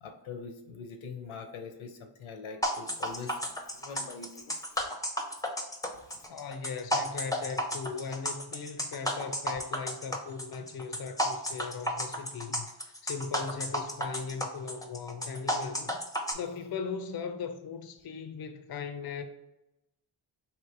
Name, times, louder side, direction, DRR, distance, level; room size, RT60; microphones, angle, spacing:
voice 1, 0.0-3.4 3.7-4.5 6.1-6.2, left 5 dB, 85° left, 0.8 m, -43 dB
sound 1, 2.6-16.3, equal, 10° left, 0.6 m, -32 dB
voice 2, 6.3-16.0 16.3-19.2, left 5 dB, 50° left, 0.5 m, -38 dB
3.1 x 2.9 x 4.6 m
cardioid pair, 85°, 47 cm